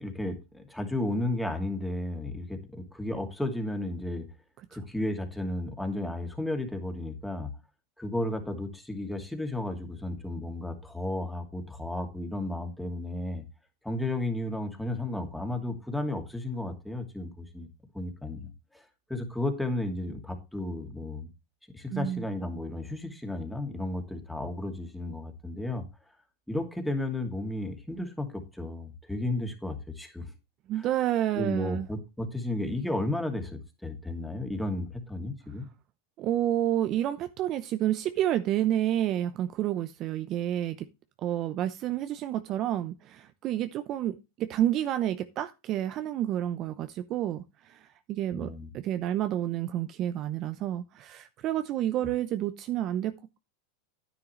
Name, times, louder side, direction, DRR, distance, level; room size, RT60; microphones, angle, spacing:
voice 1, 0.0-4.3 4.7-7.5 8.0-13.4 13.8-17.7 17.9-18.5 19.1-21.3 21.7-25.8 26.5-30.3 30.8-30.9 31.3-35.7 48.3-48.7, left 1 dB, 5° left, 2.5 m, -33 dB
voice 2, 21.9-22.2 30.7-31.9 36.2-40.9 41.2-53.4, right 12 dB, 40° right, 0.8 m, -29 dB
10.0 x 9.7 x 3.2 m
supercardioid pair, 120°, 0 cm